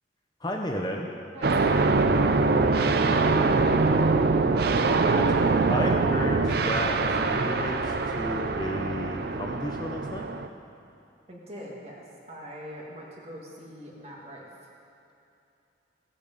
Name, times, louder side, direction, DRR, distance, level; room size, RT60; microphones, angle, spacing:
voice 1, 0.4-1.1 2.7-3.2 4.8-5.3 5.7-10.2, left 1 dB, 20° left, 1 dB, 0.8 m, -33 dB
voice 2, 1.3-2.0 3.5-4.3 11.3-14.7, equal, 35° right, -3 dB, 1.9 m, -43 dB
sound 1, 1.4-10.5, right 3 dB, 55° right, 0.5 m, -23 dB
15.5 x 8.6 x 5.3 m, 2.7 s
head